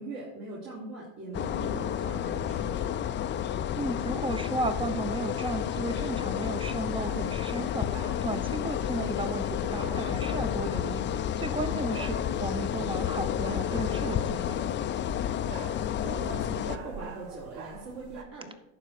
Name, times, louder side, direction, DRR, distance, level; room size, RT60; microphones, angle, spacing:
voice 1, 0.0-2.9 11.6-11.9 15.3-15.7 16.0-18.5, right 2 dB, 50° right, -7 dB, 3.5 m, -41 dB
sound 1, 1.3-16.8, left 10 dB, 30° left, 0.5 m, -31 dB
voice 2, 3.7-14.6, right 2 dB, 15° right, 11 dB, 0.8 m, -34 dB
sound 2, 6.6-18.2, right 5 dB, 85° right, 1.3 m, -46 dB
11.5 x 4.5 x 6.5 m, 0.83 s
supercardioid pair, 115°, 42 cm